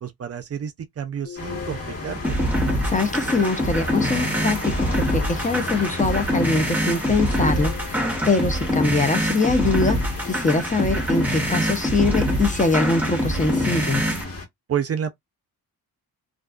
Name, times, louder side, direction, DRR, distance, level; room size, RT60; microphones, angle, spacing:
voice 1, 0.0-2.4 14.7-15.1, right 8 dB, 40° right, 0.5 m, -29 dB
sound 1, 1.2-3.5 4.2-5.3 7.2-9.3 10.2-11.1 11.8-11.9 13.2-13.3, left 6 dB, 65° left, 0.9 m, -41 dB
sound 2, 1.4-14.5, left 3 dB, 40° left, 1.4 m, -34 dB
sound 3, 2.2-14.2, equal, 5° right, 0.9 m, -24 dB
voice 2, 2.8-14.0, left 3 dB, 20° left, 0.5 m, -23 dB
2.5 x 2.3 x 2.3 m
cardioid pair, 85°, 38 cm